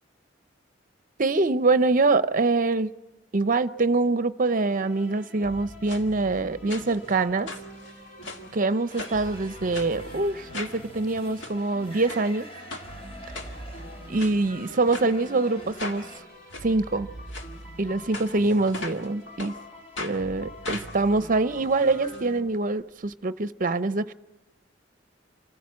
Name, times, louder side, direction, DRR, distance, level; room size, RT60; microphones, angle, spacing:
voice 1, 1.2-2.9 3.3-7.5 8.5-12.5 14.1-16.1 16.6-17.1 17.8-19.5 20.0-24.1, right 3 dB, 45° right, 0.7 m, -24 dB
sound 1, 4.5-22.4, equal, 50° left, 3.4 m, -45 dB
sound 2, 5.9-6.0 6.7-7.1 7.5-8.5 9.0-9.3 9.7-9.9 10.5-10.8 11.2-11.5 12.1-12.3 12.7-12.9 13.3-13.8 14.2-14.4 14.9-15.1 15.8-16.0 16.5-16.7 17.3-17.5 18.1-19.1 19.4-19.5 20.0-20.2 20.6-22.2 22.5-22.6 22.8-22.9, left 2 dB, 70° left, 1.9 m, -37 dB
sound 3, 8.9-16.2, equal, 35° left, 3.6 m, -46 dB
27.0 x 15.0 x 7.5 m
head